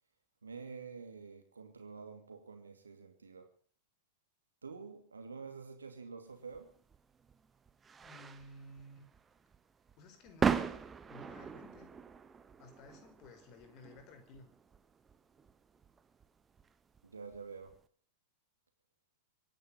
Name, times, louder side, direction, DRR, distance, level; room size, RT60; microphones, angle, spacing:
voice 1, 0.4-3.5 4.6-6.7 17.0-17.8, right 5 dB, 75° right, 2.5 m, -48 dB
sound 1, 6.5-17.8, right 6 dB, 20° right, 1.3 m, -40 dB
voice 2, 8.0-9.1 10.0-11.9 12.6-14.5, left 2 dB, 40° left, 4.6 m, -55 dB
24.5 x 10.5 x 5.5 m
figure-of-eight pair, 90°, 0 cm